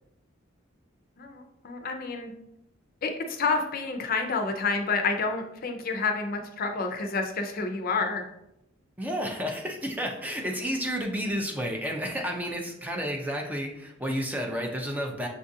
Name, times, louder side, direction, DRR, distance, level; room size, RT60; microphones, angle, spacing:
voice 1, 1.2-2.3 3.0-8.3, left 4 dB, 45° left, 5 dB, 0.5 m, -29 dB
voice 2, 9.0-15.3, equal, 10° right, 2 dB, 0.4 m, -31 dB
6.6 x 2.4 x 2.6 m, 0.84 s
head